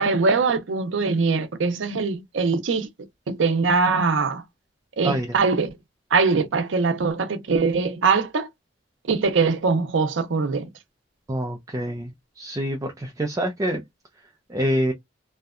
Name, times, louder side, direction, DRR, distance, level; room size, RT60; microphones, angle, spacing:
voice 1, 0.0-2.9 3.3-4.4 5.0-5.7 6.1-8.5 9.1-10.7, right 4 dB, 85° right, 0.5 m, -22 dB
voice 2, 5.0-5.3 11.3-12.1 12.4-13.8 14.5-14.9, equal, 20° right, 0.4 m, -26 dB
2.7 x 2.2 x 2.3 m
head